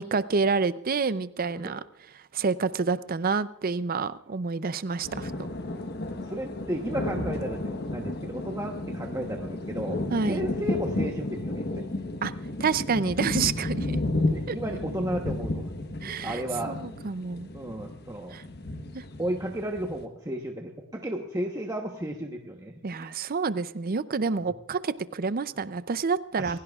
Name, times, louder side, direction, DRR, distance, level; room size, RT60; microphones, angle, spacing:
voice 1, 0.0-1.8 2.3-5.3 10.1-10.5 12.2-12.3 12.6-14.0 14.5-14.6 16.0-16.4 16.7-17.5 18.3-18.4 18.9-19.0 22.8-26.6, right 4 dB, 40° right, 15 dB, 0.5 m, -28 dB
sound 1, 5.0-20.0, left 2 dB, 50° left, 1.2 m, -32 dB
voice 2, 6.2-11.8 14.3-15.7 16.2-16.9 17.5-18.4 19.2-23.2 26.4-26.6, right 1 dB, 15° right, 1 dB, 1.0 m, -33 dB
28.0 x 16.0 x 2.4 m, 0.79 s
head